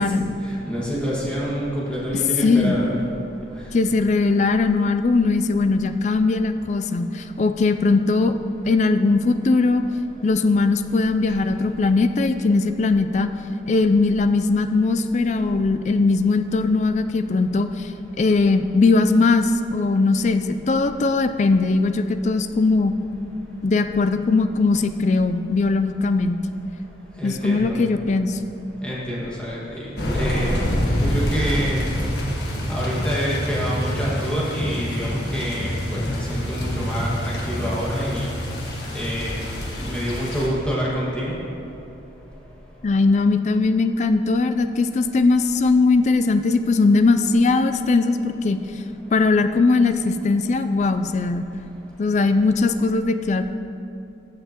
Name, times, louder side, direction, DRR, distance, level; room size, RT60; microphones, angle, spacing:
voice 1, 0.0-2.9 27.2-27.8 28.8-29.9 30.1-30.6 31.0-31.9 32.7-38.3 38.9-39.4 39.8-41.3, equal, 5° left, -7 dB, 1.8 m, -27 dB
voice 2, 2.4-2.8 3.7-8.3 8.7-9.8 10.2-13.3 13.7-17.9 18.2-22.9 23.6-26.4 27.2-28.4 42.8-48.6 49.1-51.5 52.0-53.4, left 3 dB, 40° left, 9 dB, 0.3 m, -19 dB
sound 1, 30.0-40.5, equal, 60° left, 1.5 m, -26 dB
15.0 x 6.8 x 3.0 m, 2.8 s
head